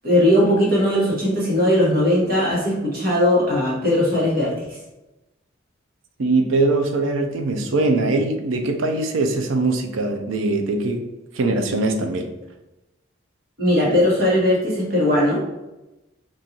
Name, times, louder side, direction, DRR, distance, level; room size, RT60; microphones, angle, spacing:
voice 1, 0.0-4.6 13.6-15.4, left 1 dB, 45° right, -6 dB, 1.2 m, -19 dB
voice 2, 6.2-11.0 11.3-12.3, right 2 dB, 75° right, 5 dB, 0.5 m, -21 dB
3.7 x 2.5 x 2.9 m, 0.99 s
head